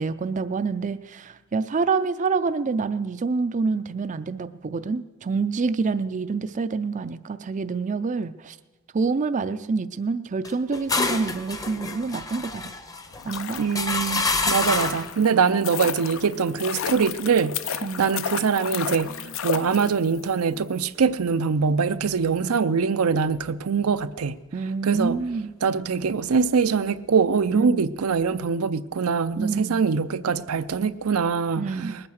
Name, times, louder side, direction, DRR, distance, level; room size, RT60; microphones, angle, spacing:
voice 1, 0.0-8.6 8.9-12.7 13.2-13.6 17.8-18.1 24.5-25.5 27.5-27.9 29.4-29.8 31.6-32.0, right 4 dB, 35° right, 0.4 m, -27 dB
sound 1, 10.4-15.1, left 3 dB, 15° left, 0.8 m, -28 dB
sound 2, 13.1-20.3 20.5-20.6, left 7 dB, 65° left, 0.6 m, -33 dB
voice 2, 13.6-19.1 19.4-24.4 24.8-25.2 25.6-31.9, right 5 dB, 85° right, 0.6 m, -23 dB
20.0 x 8.8 x 6.4 m
head